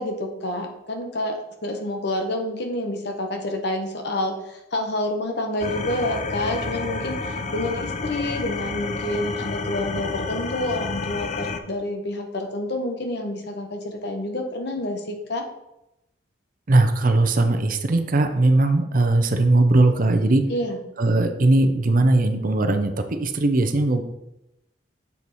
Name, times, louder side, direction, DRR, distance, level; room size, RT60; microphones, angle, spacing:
voice 1, 0.0-15.4 20.5-20.8, left 1 dB, 60° left, 3 dB, 1.0 m, -28 dB
sound 1, 5.6-11.6, left 3 dB, 40° left, 0.5 m, -30 dB
voice 2, 16.7-20.4 21.0-24.0, right 2 dB, 50° right, 7 dB, 0.6 m, -19 dB
7.0 x 4.6 x 4.1 m, 0.88 s
head